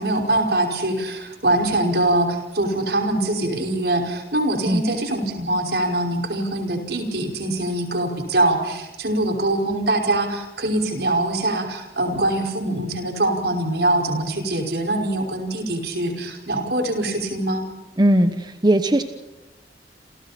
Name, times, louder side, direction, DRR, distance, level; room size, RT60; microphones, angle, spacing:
voice 1, 0.0-17.7, right 1 dB, 70° right, 2 dB, 5.5 m, -23 dB
voice 2, 18.0-19.0, right 1 dB, 25° right, 8 dB, 1.1 m, -18 dB
29.0 x 28.5 x 4.4 m, 0.99 s
head